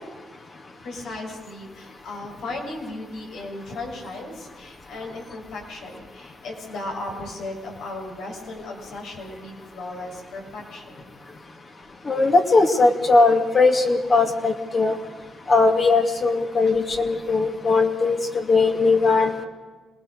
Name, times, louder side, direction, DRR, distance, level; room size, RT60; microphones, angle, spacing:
voice 1, 0.8-11.0 16.6-16.8, left 2 dB, 80° left, 0 dB, 6.8 m, -36 dB
voice 2, 12.1-14.9 15.5-19.4, left 3 dB, 40° left, 2 dB, 2.6 m, -19 dB
27.0 x 19.5 x 6.7 m, 1.3 s
cardioid pair, 80°, 0 cm